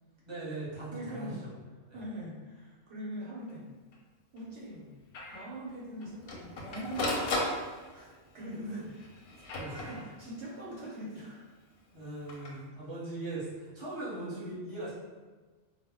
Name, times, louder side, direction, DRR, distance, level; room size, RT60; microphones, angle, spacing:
voice 1, 0.3-1.5 9.5-9.9 11.9-14.9, right 2 dB, 25° right, -9 dB, 0.8 m, -40 dB
voice 2, 0.9-3.6 4.3-4.9 5.3-7.3 7.9-11.4, right 1 dB, 75° right, -5 dB, 0.9 m, -42 dB
Printer, 3.5-3.6 3.9-4.0 4.4-4.5 5.1-5.4 6.0-8.1 8.9-10.4 12.1-12.5, left 1 dB, 65° left, 0.7 m, -35 dB
2.2 x 2.0 x 3.4 m, 1.3 s
omnidirectional pair, 1.2 m